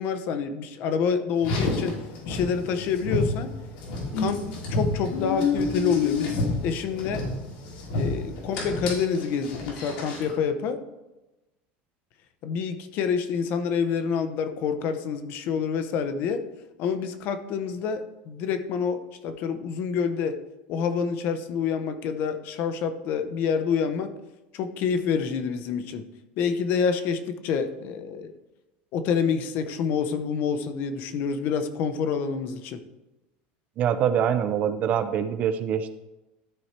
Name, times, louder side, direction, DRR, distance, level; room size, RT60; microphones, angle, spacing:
voice 1, 0.0-1.9 2.3-3.5 4.2-7.3 7.9-10.8 12.4-16.4 16.8-20.4 20.7-24.1 24.5-26.0 26.4-28.3 28.9-32.8, left 6 dB, 45° left, 10 dB, 0.7 m, -27 dB
Car, 1.4-10.3, left 3 dB, 90° left, 3.0 m, -29 dB
voice 2, 33.8-35.9, right 8 dB, 35° right, 11 dB, 0.5 m, -24 dB
12.5 x 4.6 x 4.3 m, 1.0 s
cardioid pair, 165°, 4 cm